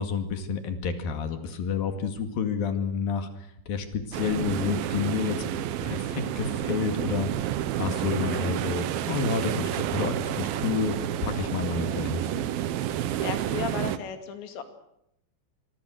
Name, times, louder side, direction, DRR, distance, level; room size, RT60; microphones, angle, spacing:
voice 1, 0.0-3.3 3.7-5.4 5.8-10.9 11.2-12.2, left 6 dB, 60° left, 7 dB, 3.7 m, -29 dB
sound 1, 4.1-14.0, right 12 dB, 70° right, 2.6 m, -30 dB
voice 2, 12.9-14.6, left 8 dB, 90° left, 7 dB, 4.7 m, -35 dB
26.5 x 23.5 x 6.5 m, 0.76 s
omnidirectional pair, 5.0 m